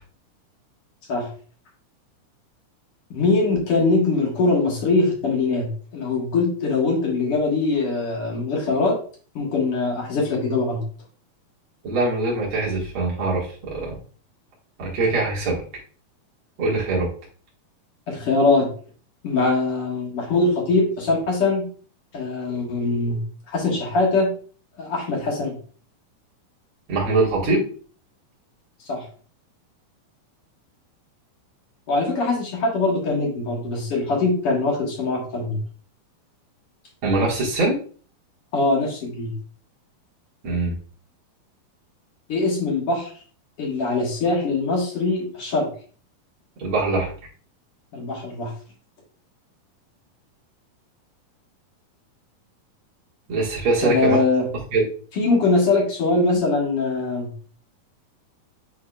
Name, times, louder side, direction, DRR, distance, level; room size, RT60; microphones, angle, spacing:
voice 1, 3.1-8.9 9.4-10.8 18.1-18.7 19.2-21.7 22.1-23.2 23.5-24.3 24.8-25.6 28.9-29.0 31.9-35.6 38.5-39.3 42.3-43.1 43.6-45.7 47.9-48.5 53.8-54.5 55.2-57.3, left 3 dB, 55° left, -1 dB, 1.8 m, -22 dB
voice 2, 11.8-14.0 14.8-15.6 16.6-17.1 26.9-27.6 37.0-37.7 40.4-40.7 46.6-47.1 53.3-54.2 54.7-54.8, right 3 dB, 40° right, -5 dB, 2.5 m, -22 dB
10.5 x 3.6 x 2.5 m, 0.42 s
omnidirectional pair, 4.4 m